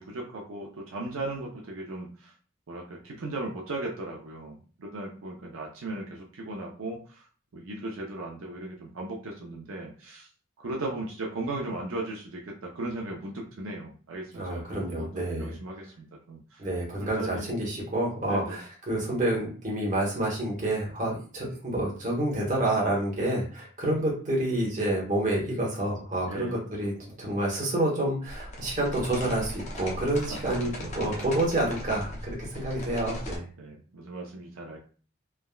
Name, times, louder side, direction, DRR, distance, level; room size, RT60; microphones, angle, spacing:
voice 1, 0.0-2.3 2.7-7.2 7.5-10.3 10.6-16.7 17.0-17.6 18.3-18.6 26.3-26.6 30.4-30.7 33.6-34.8, right 2 dB, 80° right, -1 dB, 0.5 m, -37 dB
voice 2, 14.3-15.6 16.6-26.9 27.2-33.4, right 1 dB, 35° right, -3 dB, 1.0 m, -28 dB
sound 1, 28.3-33.4, equal, 35° left, 0.6 m, -38 dB
3.4 x 2.1 x 2.3 m, 0.40 s
head